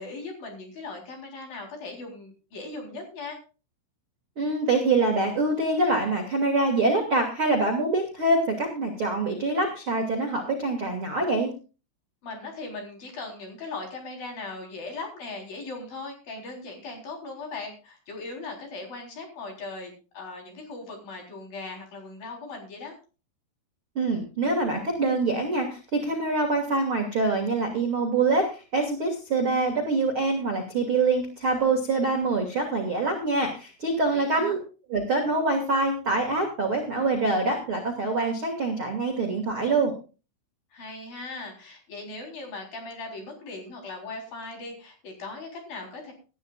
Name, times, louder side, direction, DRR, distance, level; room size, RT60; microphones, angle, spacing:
voice 1, 0.0-3.4 12.2-23.0 34.1-34.6 40.7-46.1, left 3 dB, 45° left, 2 dB, 5.2 m, -39 dB
voice 2, 4.4-11.5 23.9-34.6 34.9-39.9, right 3 dB, 40° right, 2 dB, 1.9 m, -25 dB
19.0 x 13.0 x 2.4 m, 0.33 s
omnidirectional pair, 6.0 m